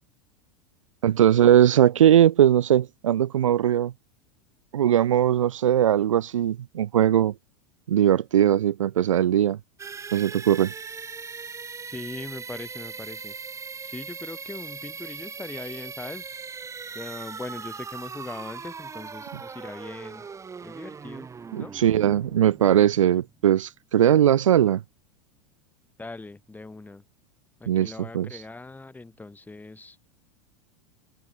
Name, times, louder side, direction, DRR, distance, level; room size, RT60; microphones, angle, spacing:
voice 1, 1.0-3.9 4.7-7.3 7.9-9.6 10.1-10.7 21.5-24.8 27.7-28.3, right 10 dB, 80° right, 0.8 m, -20 dB
sound 1, 9.8-23.5, right 5 dB, 20° right, 1.2 m, -39 dB
voice 2, 11.9-13.3 13.8-16.4 16.9-20.3 20.6-21.3 21.6-21.7 26.0-27.0 27.6-30.0, left 3 dB, 10° left, 4.4 m, -40 dB
hypercardioid pair, 95°, 16 cm